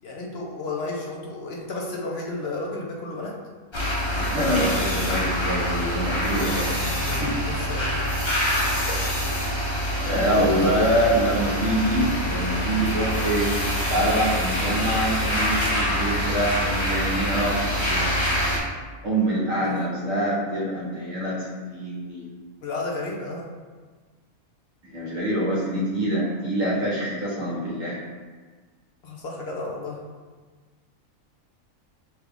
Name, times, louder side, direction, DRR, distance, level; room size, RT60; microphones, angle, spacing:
voice 1, 0.0-3.4 6.4-8.1 10.3-10.9 19.6-19.7 22.6-23.5 29.0-30.0, left 3 dB, 60° left, -2 dB, 0.8 m, -32 dB
sound 1, 3.7-18.6, equal, 30° left, 0.6 m, -25 dB
voice 2, 4.1-6.6 7.2-7.3 10.0-13.5 13.9-18.5 19.0-22.3 24.8-28.0, right 1 dB, 75° right, -5 dB, 1.6 m, -25 dB
5.8 x 2.3 x 3.5 m, 1.4 s
omnidirectional pair, 1.4 m